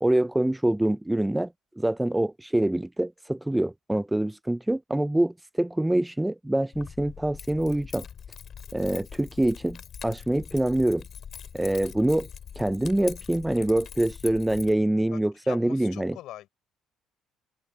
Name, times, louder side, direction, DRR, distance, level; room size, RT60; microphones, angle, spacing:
voice 1, 0.0-8.0 8.7-9.8 10.0-11.0 11.5-12.3 12.6-16.2, right 1 dB, 5° right, 0.3 m, -25 dB
Keys jangling, 6.7-14.7, left 7 dB, 40° left, 5.2 m, -43 dB
voice 2, 15.1-16.5, left 14 dB, 70° left, 5.9 m, -43 dB
open air
cardioid pair, 150°, 0 cm